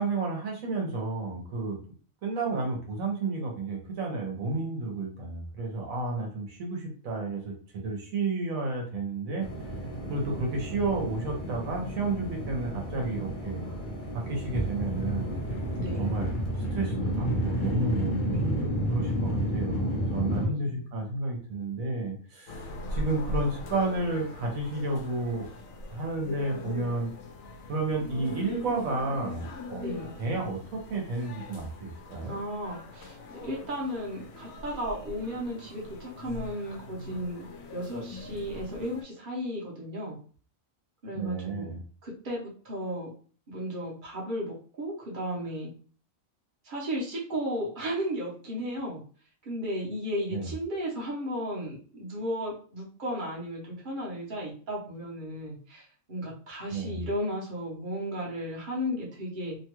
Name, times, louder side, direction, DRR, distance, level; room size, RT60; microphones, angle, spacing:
voice 1, 0.0-1.8 2.2-9.5 10.1-13.7 14.1-15.4 16.0-16.3 16.7-25.5 25.9-27.1 27.7-32.4 41.1-41.8 50.3-50.5 56.7-57.0, right 3 dB, 80° right, 0 dB, 1.2 m, -31 dB
sound 1, 9.4-20.5, equal, 50° left, 0.6 m, -31 dB
voice 2, 15.8-16.1 20.2-20.8 29.8-30.1 32.3-37.5 37.7-40.2 41.0-41.7 42.0-43.1 43.5-45.7 46.6-49.0 49.4-59.6, equal, 40° right, -2 dB, 0.9 m, -34 dB
sound 2, 22.5-39.0, left 2 dB, 80° left, 1.0 m, -41 dB
2.9 x 2.3 x 2.9 m, 0.42 s
omnidirectional pair, 1.4 m